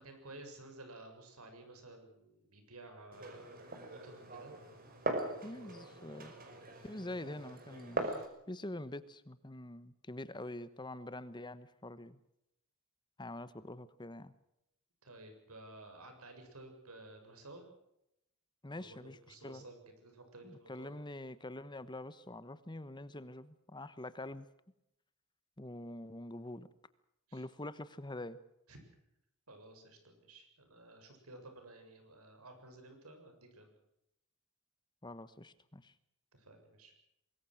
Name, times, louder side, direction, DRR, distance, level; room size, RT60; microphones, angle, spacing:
voice 1, 0.0-3.6 3.9-4.5 5.0-6.1 8.0-8.2 15.0-17.7 18.8-21.0 27.3-27.5 28.7-28.8 29.5-33.7 36.3-36.9, right 2 dB, 85° right, 6 dB, 7.1 m, -54 dB
Glass, 3.1-8.3, right 2 dB, 40° right, 5.2 m, -41 dB
voice 2, 5.4-6.3 6.8-12.2 13.2-14.3 18.6-19.2 19.4-19.6 20.4-24.5 25.6-26.7 27.3-28.4 35.0-35.9, left 1 dB, 20° left, 14 dB, 1.1 m, -45 dB
24.5 x 21.0 x 6.4 m, 0.81 s
head